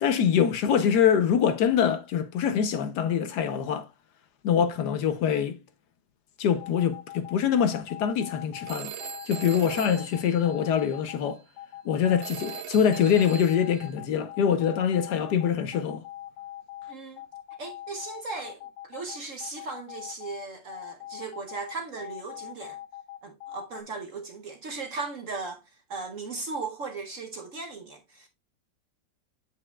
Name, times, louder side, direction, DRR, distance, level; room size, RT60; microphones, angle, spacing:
voice 1, 0.0-3.9 4.4-5.6 6.4-8.9 9.3-11.4 11.8-16.0, left 8 dB, 70° left, 1.2 m, -24 dB
sound 1, 6.6-23.8, left 13 dB, 90° left, 1.4 m, -42 dB
Telephone, 8.7-11.0 12.2-13.9, right 8 dB, 80° right, 0.6 m, -41 dB
voice 2, 16.9-17.2 17.6-22.8 23.2-25.6 25.9-28.3, right 4 dB, 55° right, 0.9 m, -37 dB
8.1 x 7.5 x 2.2 m
omnidirectional pair, 2.1 m